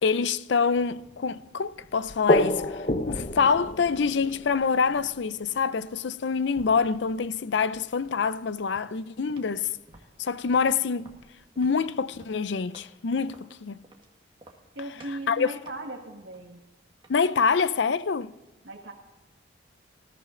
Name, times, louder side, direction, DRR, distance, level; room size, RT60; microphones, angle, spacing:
voice 1, 0.0-9.7 10.2-11.2 11.6-13.8 15.0-15.6 17.1-18.3, left 5 dB, 70° left, 0.5 m, -26 dB
sound 1, 0.8-5.8 6.5-7.1 7.7-7.8 8.1-8.2 9.4-9.5 9.9-10.0 10.5-10.6 11.1-11.2, left 1 dB, 40° left, 0.8 m, -30 dB
sound 2, 4.2-4.5 4.9-5.8 6.2-7.1 7.5-7.8 8.1-8.3 8.7-9.6 9.9-13.0 13.3-14.1 14.4-14.7 15.0-15.3 15.7-17.3, right 2 dB, 25° right, 1.7 m, -54 dB
voice 2, 14.7-16.6 18.6-18.9, right 1 dB, 80° right, 1.6 m, -38 dB
20.0 x 14.0 x 3.8 m
head